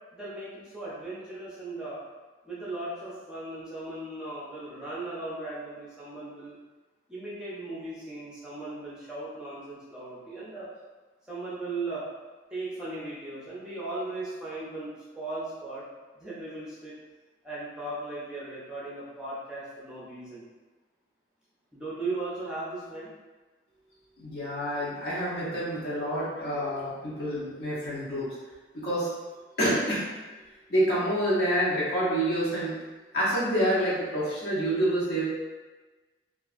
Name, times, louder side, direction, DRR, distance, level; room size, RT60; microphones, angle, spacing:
voice 1, 0.1-2.0 2.4-6.6 7.1-10.7 11.3-12.0 12.5-15.8 16.2-16.9 17.4-20.4 21.7-23.1, right 2 dB, 5° right, -9 dB, 0.6 m, -37 dB
voice 2, 24.2-28.3 28.7-29.1 29.6-30.1 30.7-32.7 33.1-35.2, equal, 65° left, -8 dB, 0.9 m, -27 dB
2.9 x 2.4 x 2.4 m, 1.3 s
head